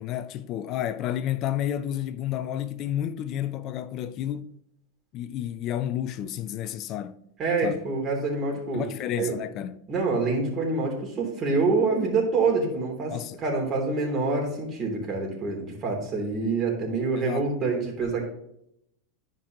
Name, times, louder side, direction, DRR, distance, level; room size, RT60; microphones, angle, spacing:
voice 1, 0.0-4.6 5.1-7.2 7.6-7.9 8.7-9.8 13.1-13.4 17.2-17.5, left 11 dB, 45° left, 0.5 m, -31 dB
voice 2, 7.4-8.8 9.2-9.3 9.9-13.1 13.4-18.3, right 3 dB, 35° right, 3.1 m, -26 dB
11.0 x 5.3 x 3.0 m
hypercardioid pair, 100°, 0 cm